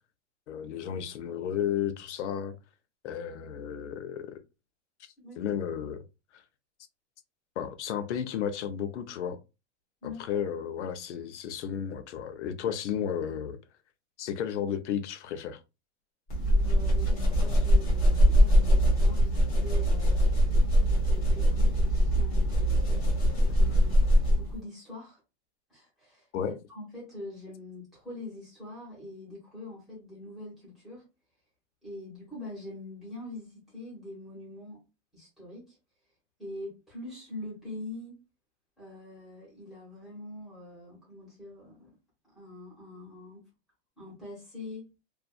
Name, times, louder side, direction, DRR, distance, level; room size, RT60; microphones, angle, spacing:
voice 1, 0.5-2.6 3.0-4.4 5.4-6.0 6.3-6.4 7.6-9.4 10.0-13.6 14.2-15.6 26.3-26.6, left 8 dB, 85° left, 0.6 m, -33 dB
voice 2, 5.2-5.5 10.0-10.4 16.6-20.6 21.1-22.7 23.5-24.0 24.3-25.2 25.7-26.3 26.7-31.0 31.8-34.8 35.1-35.8 36.4-38.2 38.8-41.9 42.3-43.4 44.0-44.9, left 2 dB, ahead, 1.1 m, -44 dB
sound 1, 16.3-24.6, equal, 20° left, 0.7 m, -22 dB
2.6 x 2.3 x 2.3 m
supercardioid pair, 180°, 34 cm